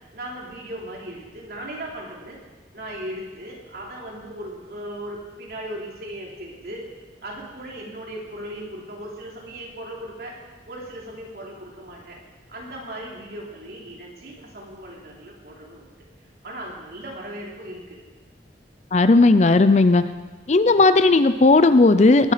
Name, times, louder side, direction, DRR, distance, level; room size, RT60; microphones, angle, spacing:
voice 1, 0.1-2.4 2.7-6.9 7.2-10.3 10.7-12.2 12.5-15.9 16.4-18.0 20.6-21.1, right 1 dB, 55° right, -3 dB, 3.3 m, -37 dB
voice 2, 18.9-20.0 20.5-22.3, left 3 dB, 40° left, 12 dB, 0.5 m, -15 dB
20.0 x 9.8 x 5.0 m, 1.3 s
head